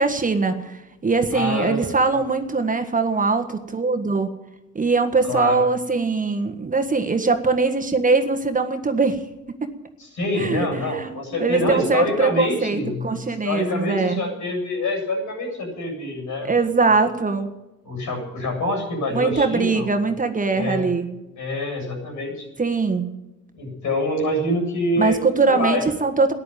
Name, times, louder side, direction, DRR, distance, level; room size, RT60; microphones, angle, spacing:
voice 1, 0.0-4.3 4.7-9.2 10.4-14.1 16.4-17.5 19.1-21.1 22.6-23.1 25.0-26.3, right 4 dB, 25° right, 6 dB, 1.6 m, -21 dB
voice 2, 1.3-1.9 5.3-5.6 10.0-13.1 13.4-16.6 17.8-19.9 20.5-20.9 21.4-22.5 23.5-25.2 25.5-25.9, left 1 dB, 75° left, 2 dB, 7.9 m, -26 dB
14.0 x 10.5 x 9.2 m, 1.0 s
cardioid pair, 90°, 30 cm